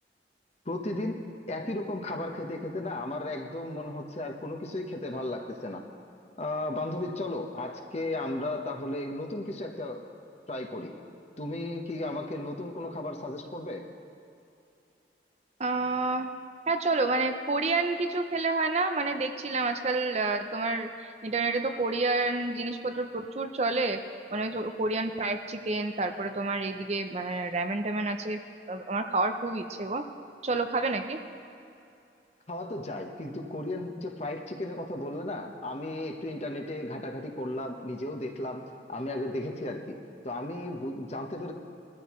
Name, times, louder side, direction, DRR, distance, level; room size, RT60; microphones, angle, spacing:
voice 1, 0.6-1.2 1.5-5.8 6.4-10.0 10.5-10.9 11.4-13.8 32.5-40.0 40.2-41.5, left 1 dB, 35° left, 3 dB, 1.1 m, -35 dB
voice 2, 15.6-16.3 16.7-24.0 24.3-28.4 28.7-30.0 30.4-31.2, right 3 dB, 35° right, 7 dB, 0.6 m, -29 dB
21.5 x 13.0 x 3.1 m, 2.6 s
head